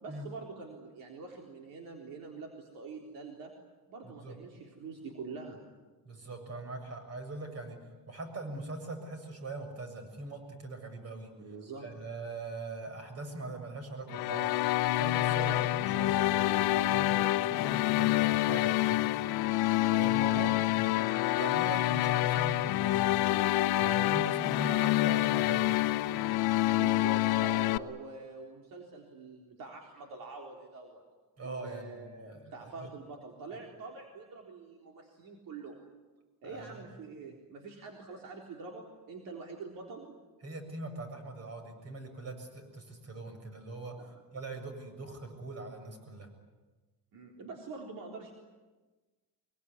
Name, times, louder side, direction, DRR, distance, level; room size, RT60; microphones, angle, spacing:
voice 1, 0.0-3.5 3.9-5.6 11.4-11.9 15.4-15.7 20.3-20.6 26.7-31.0 31.4-35.8 36.4-40.2 44.1-44.2 47.1-48.3, right 4 dB, 65° right, 1 dB, 3.9 m, -45 dB
voice 2, 4.0-4.4 6.0-7.8 8.1-11.3 11.8-14.5 14.9-19.1 19.9-21.0 21.4-23.2 23.8-25.8 31.4-32.9 36.4-36.9 40.4-46.3, right 2 dB, 40° right, 6 dB, 6.9 m, -42 dB
sound 1, 14.1-27.8, left 16 dB, 90° left, 1.0 m, -27 dB
24.0 x 23.0 x 9.8 m, 1.3 s
cardioid pair, 130°, 37 cm